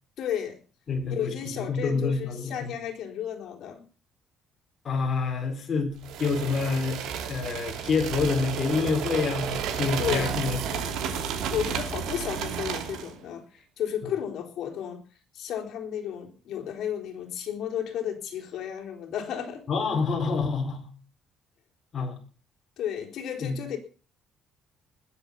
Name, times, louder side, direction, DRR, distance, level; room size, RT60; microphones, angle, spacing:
voice 1, 0.2-0.6 1.1-3.8 10.0-10.4 10.7-11.2 11.5-15.0 15.3-19.6 22.8-23.8, left 9 dB, 55° left, 2 dB, 4.2 m, -33 dB
voice 2, 0.9-1.4 1.7-2.7 4.8-7.0 7.3-10.9 19.7-20.9 21.9-22.2 23.4-23.6, left 4 dB, 30° left, 1 dB, 4.8 m, -27 dB
sound 1, 6.0-13.1, right 7 dB, 75° right, 2.9 m, -32 dB
20.5 x 7.9 x 7.1 m, 0.38 s
cardioid pair, 165°, 0 cm